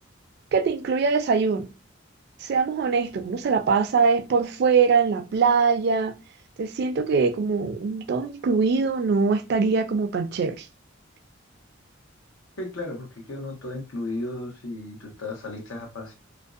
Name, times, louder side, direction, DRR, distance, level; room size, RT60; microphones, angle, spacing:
voice 1, 0.5-1.7 2.4-6.1 6.6-10.7, right 5 dB, 55° right, 0.3 m, -22 dB
voice 2, 12.6-16.1, left 2 dB, 80° left, 0.8 m, -34 dB
2.6 x 2.1 x 2.3 m
head